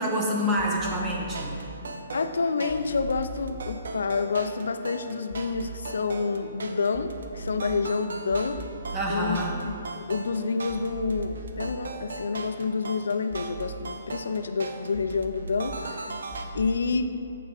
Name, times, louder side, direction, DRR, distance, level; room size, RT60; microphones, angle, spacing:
voice 1, 0.0-1.5 8.9-9.6, equal, 15° right, -2 dB, 1.2 m, -27 dB
sound 1, 0.6-1.6 2.7-3.6 5.3-5.6 6.9-7.6 8.3-9.6 10.7-11.6 13.3-13.6 14.9-15.6 16.3-16.7, right 2 dB, 30° left, 1.5 m, -39 dB
sound 2, 0.6-16.5, right 3 dB, 85° right, 0.8 m, -40 dB
voice 2, 2.1-8.6 9.1-9.4 10.1-16.0 16.5-17.1, left 4 dB, 90° left, 9 dB, 0.6 m, -28 dB
13.5 x 4.8 x 4.1 m, 2.5 s
hypercardioid pair, 165°, 0 cm